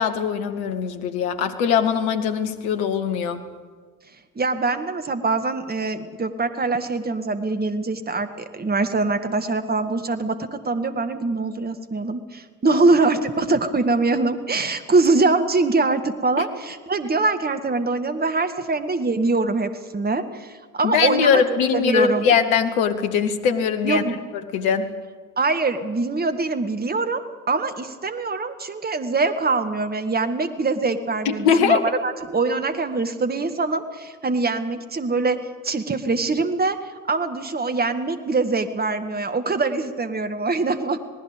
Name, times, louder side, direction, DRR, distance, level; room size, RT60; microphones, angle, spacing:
voice 1, 0.0-3.4 12.6-13.1 20.8-24.0 24.5-24.9 31.2-31.8, left 7 dB, 65° left, 8 dB, 1.6 m, -21 dB
voice 2, 4.4-21.4 21.7-22.3 23.8-24.1 25.4-41.0, right 3 dB, 20° right, 8 dB, 1.8 m, -23 dB
27.5 x 19.0 x 5.2 m, 1.5 s
figure-of-eight pair, 60°, 45 cm